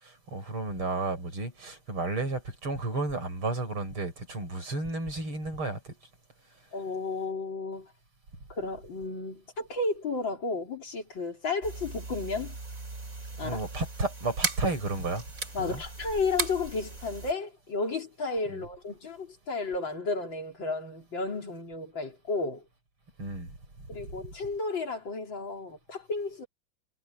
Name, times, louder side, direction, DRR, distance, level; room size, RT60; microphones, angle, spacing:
voice 1, 0.0-6.0 13.4-15.2 15.6-15.8 18.5-18.6 23.2-23.5, right 2 dB, 80° right, 7.8 m, -32 dB
voice 2, 6.7-7.9 8.5-12.5 13.4-13.6 15.5-22.6 23.9-26.5, left 3 dB, 60° left, 4.2 m, -33 dB
sound 1, 11.6-17.3, right 3 dB, 40° right, 3.6 m, -37 dB
omnidirectional pair, 2.3 m